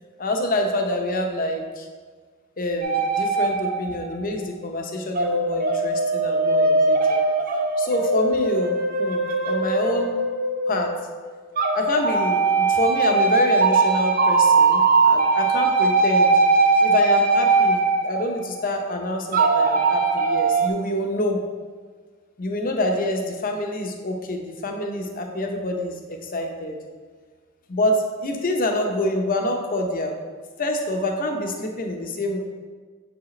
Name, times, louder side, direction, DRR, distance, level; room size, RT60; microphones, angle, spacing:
voice 1, 0.2-1.9 2.6-7.2 7.8-10.2 10.7-10.9 11.7-16.3 16.8-21.4 22.4-26.8 27.7-30.2 30.6-32.4, left 1 dB, 45° left, 3 dB, 0.7 m, -26 dB
sound 1, 2.8-4.2 5.1-11.0 11.6-18.7 19.3-20.7, right 3 dB, 45° right, 0.6 m, -20 dB
6.7 x 4.9 x 3.1 m, 1.5 s
head